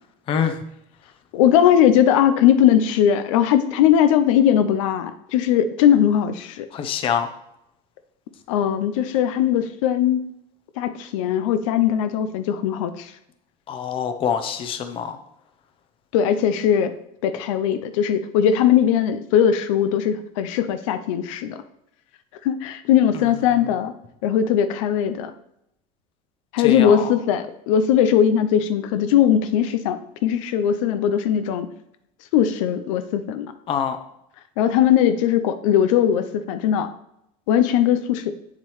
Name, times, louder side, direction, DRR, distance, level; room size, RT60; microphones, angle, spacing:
voice 1, 1.3-6.7 8.5-10.2 10.8-13.1 16.1-16.9 17.2-21.6 22.4-23.9 24.2-25.3 26.5-31.7 32.3-33.5 34.6-36.9 37.5-38.3, left 9 dB, 90° left, 10 dB, 0.7 m, -19 dB
voice 2, 6.7-7.3 13.7-15.2 26.6-27.0 33.7-34.0, left 8 dB, 35° left, 8 dB, 0.7 m, -24 dB
7.5 x 7.3 x 3.2 m, 0.78 s
cardioid pair, 155°, 16 cm